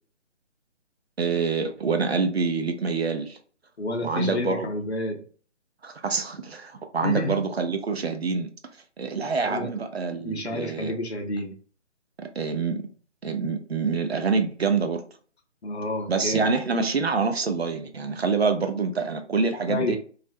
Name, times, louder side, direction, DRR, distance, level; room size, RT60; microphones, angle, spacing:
voice 1, 1.2-3.4 4.0-4.7 5.8-8.5 9.0-11.0 12.2-12.8 13.2-15.0 16.1-20.0, right 4 dB, 60° right, 0.5 m, -26 dB
voice 2, 3.8-5.2 7.0-7.4 9.5-9.7 10.2-11.6 15.6-16.5 19.7-20.0, left 2 dB, 60° left, 0.7 m, -29 dB
2.4 x 2.0 x 2.6 m
figure-of-eight pair, 150°, 37 cm